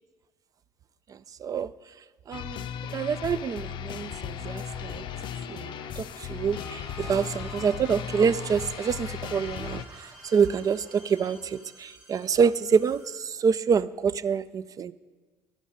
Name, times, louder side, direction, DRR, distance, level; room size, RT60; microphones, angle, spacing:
voice 1, 1.1-1.7 2.3-5.0 5.5-14.9, right 6 dB, 40° right, 17 dB, 0.4 m, -27 dB
sound 1, 2.3-9.9, left 9 dB, 60° left, 0.5 m, -36 dB
sound 2, 4.4-11.6, right 3 dB, 65° right, 1.9 m, -54 dB
sound 3, 6.5-13.2, right 1 dB, 90° right, 4.0 m, -50 dB
11.0 x 10.5 x 5.1 m, 1.3 s
hypercardioid pair, 60°, 9 cm